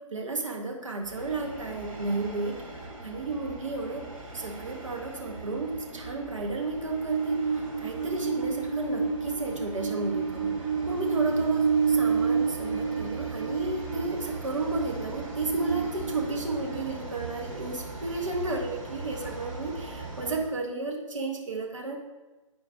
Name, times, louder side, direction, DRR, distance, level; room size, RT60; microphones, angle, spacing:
voice 1, 0.1-4.1 4.3-22.0, right 2 dB, 65° right, 0 dB, 1.2 m, -33 dB
Train, 1.0-20.5, right 5 dB, 90° right, 1.8 m, -32 dB
10.0 x 4.4 x 2.6 m, 1.2 s
figure-of-eight pair, 135°, 17 cm